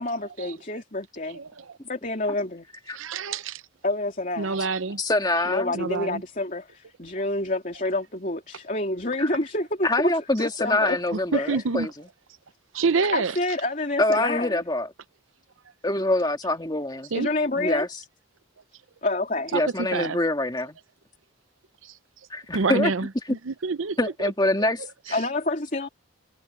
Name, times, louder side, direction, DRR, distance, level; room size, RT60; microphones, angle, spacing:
voice 1, 0.0-1.4 1.9-2.7 3.8-4.6 5.4-10.1 10.4-11.0 11.3-11.5 13.1-14.6 17.1-17.9 19.0-19.5 25.1-25.9, left 2 dB, 40° left, 3.3 m, -28 dB
voice 2, 1.3-1.8 2.9-3.6 4.4-5.0 5.7-6.2 11.1-11.9 12.7-13.3 17.1-17.3 19.5-19.6 19.9-20.2 21.8-21.9 22.5-24.3 24.6-24.7, right 4 dB, 80° right, 0.7 m, -27 dB
voice 3, 5.0-5.7 9.2-9.3 9.8-11.9 14.0-14.9 15.8-17.1 17.6-17.9 19.5-20.8 22.3-22.9 24.0-24.8, left 2 dB, 20° left, 2.1 m, -25 dB
head